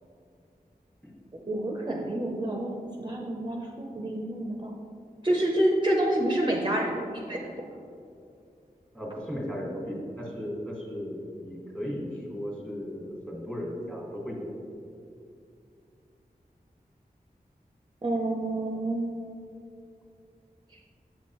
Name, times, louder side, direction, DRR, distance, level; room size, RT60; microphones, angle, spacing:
voice 1, 1.3-4.7 5.2-7.5 18.0-19.1, right 1 dB, 30° right, -1 dB, 0.6 m, -28 dB
voice 2, 8.9-14.5, equal, 5° left, -3 dB, 1.6 m, -36 dB
7.4 x 6.2 x 3.0 m, 2.5 s
wide cardioid pair, 80°, 16 cm